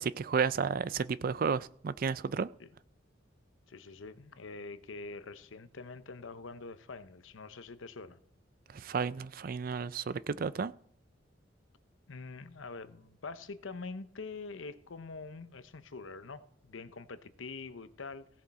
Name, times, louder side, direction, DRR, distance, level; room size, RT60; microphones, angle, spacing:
voice 1, 0.0-2.5 8.7-10.7, right 5 dB, 45° right, 0.4 m, -32 dB
voice 2, 3.7-8.2 12.1-18.3, left 4 dB, 85° left, 0.8 m, -45 dB
16.5 x 7.4 x 4.2 m
head